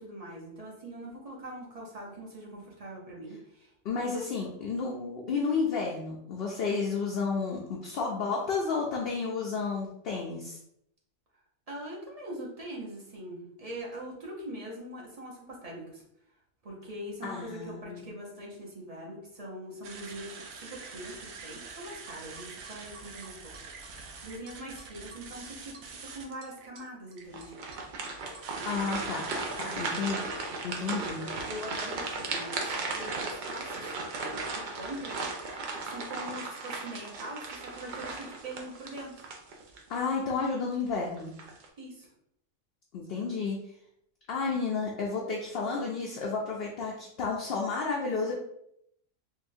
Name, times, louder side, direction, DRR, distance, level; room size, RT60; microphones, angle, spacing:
voice 1, 0.0-3.7 4.1-4.3 11.7-16.0 16.6-23.4 24.2-27.5 29.6-29.7 30.9-33.9 34.5-35.2 35.5-39.3 41.8-42.1 43.2-43.4, right 1 dB, 35° right, -4 dB, 0.8 m, -42 dB
voice 2, 3.8-10.6 17.2-18.1 28.7-30.3 30.6-31.2 39.9-41.3 42.9-43.6 44.3-48.4, left 4 dB, 65° left, -2 dB, 0.6 m, -31 dB
sound 1, 19.8-29.8, right 4 dB, 90° right, 1.0 m, -46 dB
sound 2, 27.3-40.0 40.4-40.6 41.2-41.7, right 3 dB, 70° right, 0.4 m, -36 dB
3.8 x 2.4 x 2.6 m, 0.73 s
omnidirectional pair, 1.4 m